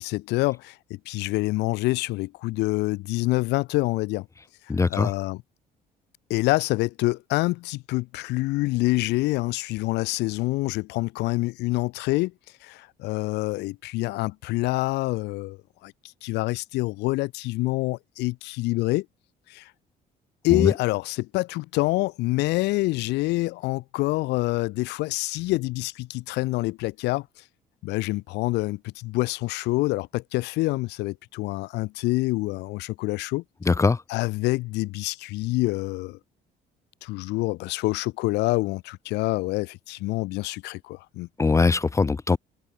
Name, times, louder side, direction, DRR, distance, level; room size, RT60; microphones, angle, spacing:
voice 1, 0.0-4.3 4.9-5.4 6.3-12.3 12.6-15.9 16.2-19.0 19.5-19.7 20.4-27.3 27.8-33.4 34.1-36.2 37.0-41.3, left 20 dB, 90° left, 1.4 m, -26 dB
voice 2, 4.7-5.1 20.5-20.7 33.7-34.0 41.4-42.4, left 4 dB, 15° left, 0.5 m, -21 dB
cardioid pair, 110°, 17 cm